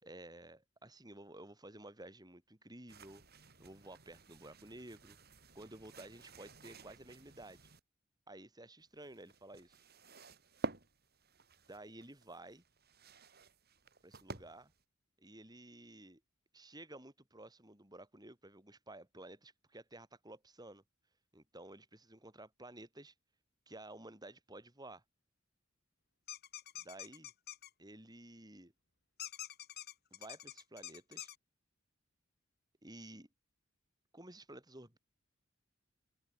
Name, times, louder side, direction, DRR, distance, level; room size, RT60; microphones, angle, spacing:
voice 1, 0.0-3.2 3.6-5.2 5.5-7.7 8.3-9.8 11.7-12.6 14.0-14.7 15.2-16.2 16.5-20.8 21.3-23.1 23.7-25.0 26.9-27.3 27.8-28.7 30.1-31.3 32.8-33.3 34.1-35.0, right 1 dB, 20° right, 6.5 m, -53 dB
sound 1, 2.9-7.8 8.8-14.8, right 2 dB, 50° right, 6.8 m, -50 dB
sound 2, 26.3-27.7 29.2-31.4, left 12 dB, 55° left, 4.9 m, -47 dB
open air
head